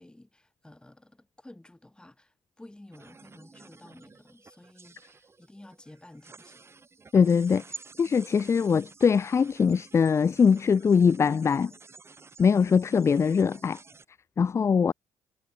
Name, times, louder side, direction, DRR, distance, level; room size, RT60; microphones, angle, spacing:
voice 1, 0.0-6.7, left 1 dB, 10° left, 6.5 m, -52 dB
sound 1, 2.9-14.0, right 4 dB, 25° right, 6.0 m, -50 dB
voice 2, 7.1-7.6 8.0-11.7 12.4-13.8 14.4-14.9, left 6 dB, 30° left, 0.4 m, -22 dB
cardioid pair, 90°, 9 cm